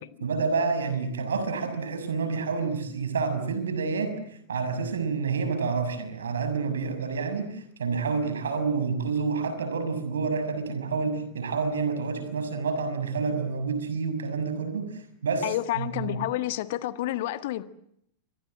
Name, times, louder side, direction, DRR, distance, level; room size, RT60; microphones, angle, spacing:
voice 1, 0.2-4.2 4.5-15.5 15.8-16.2, right 5 dB, 65° right, 6.4 m, -28 dB
voice 2, 15.4-17.6, left 14 dB, 50° left, 1.6 m, -29 dB
28.5 x 25.0 x 7.7 m
figure-of-eight pair, 90°, 0 cm